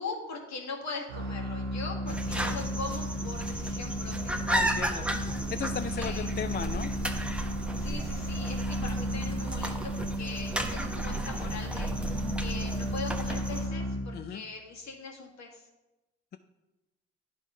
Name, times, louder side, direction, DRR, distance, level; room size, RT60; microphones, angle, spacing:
voice 1, 0.0-4.5 6.0-6.3 7.8-15.7, left 4 dB, 60° left, 1 dB, 1.7 m, -41 dB
sound 1, 1.1-14.5, equal, 75° right, 0.9 m, -34 dB
sound 2, 2.1-13.7, right 1 dB, 5° right, 1.0 m, -34 dB
voice 2, 4.5-6.9 14.1-14.4, left 7 dB, 30° left, 10 dB, 0.4 m, -36 dB
10.5 x 3.6 x 4.9 m, 1.1 s
hypercardioid pair, 45°, 32 cm